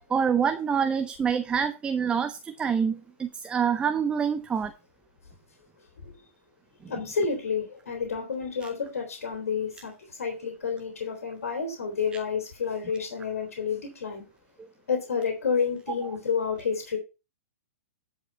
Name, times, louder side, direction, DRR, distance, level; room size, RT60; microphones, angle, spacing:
voice 1, 0.1-4.7 8.6-8.7 14.6-14.7, right 7 dB, 15° right, 0.5 m, -26 dB
voice 2, 6.9-14.2 14.9-17.0, left 6 dB, 85° left, 3.2 m, -30 dB
10.5 x 5.1 x 5.3 m
hypercardioid pair, 140°, 8 cm